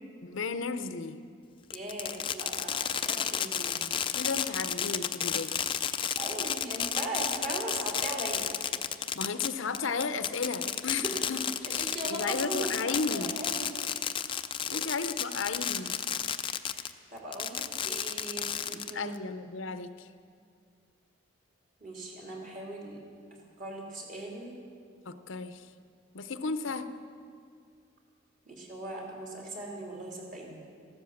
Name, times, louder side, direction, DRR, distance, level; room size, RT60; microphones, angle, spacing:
voice 1, 0.2-1.2 4.1-5.6 5.9-6.0 9.1-11.4 11.7-13.3 14.7-15.9 18.9-20.1 25.1-25.7 26.1-26.9, left 4 dB, 75° left, 10 dB, 0.7 m, -34 dB
Fireworks, 1.7-16.9 17.3-19.2, left 8 dB, 25° left, 0.4 m, -32 dB
voice 2, 1.7-3.8 6.2-8.5 11.0-11.1 11.4-13.7 14.7-14.8 16.6-19.2 21.8-23.0 23.6-24.6 28.5-30.6, right 1 dB, 40° right, -1 dB, 3.0 m, -39 dB
14.5 x 12.5 x 7.2 m, 2.2 s
head